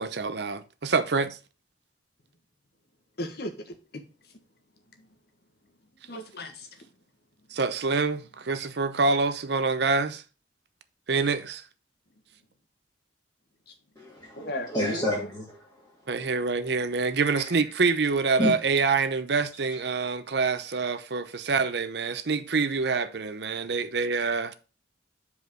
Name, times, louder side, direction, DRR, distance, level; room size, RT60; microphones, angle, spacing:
voice 1, 0.0-1.4 7.5-10.2 11.1-11.6 16.1-24.5, right 4 dB, 65° right, 0.7 m, -26 dB
voice 2, 3.2-4.0 6.1-6.7 14.4-15.3, left 1 dB, 60° left, 1.4 m, -36 dB
voice 3, 14.0-15.6 17.5-17.7 18.4-18.5, left 1 dB, 20° left, 2.2 m, -30 dB
5.1 x 5.0 x 6.2 m
head